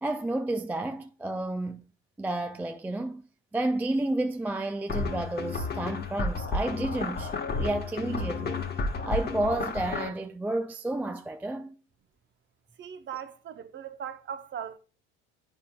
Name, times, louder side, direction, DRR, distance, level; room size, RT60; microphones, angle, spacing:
voice 1, 0.0-1.8 2.2-3.2 3.5-8.6 9.1-11.8, right 2 dB, 5° right, 0.3 m, -31 dB
sound 1, 4.9-10.1, left 3 dB, 30° left, 1.2 m, -32 dB
voice 2, 12.8-14.8, right 8 dB, 35° right, 0.8 m, -39 dB
9.3 x 5.3 x 2.2 m
hypercardioid pair, 80°, 33 cm